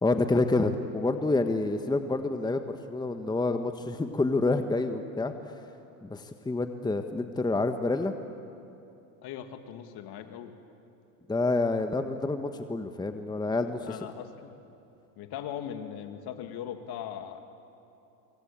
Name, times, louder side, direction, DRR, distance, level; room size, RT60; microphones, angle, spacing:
voice 1, 0.0-5.3 6.0-8.1 11.3-13.9, left 2 dB, 10° left, 8 dB, 1.2 m, -28 dB
voice 2, 9.2-10.5 13.8-14.5 15.2-17.4, left 9 dB, 50° left, 7 dB, 2.4 m, -39 dB
25.5 x 23.0 x 8.8 m, 2.8 s
supercardioid pair, 100°, 47 cm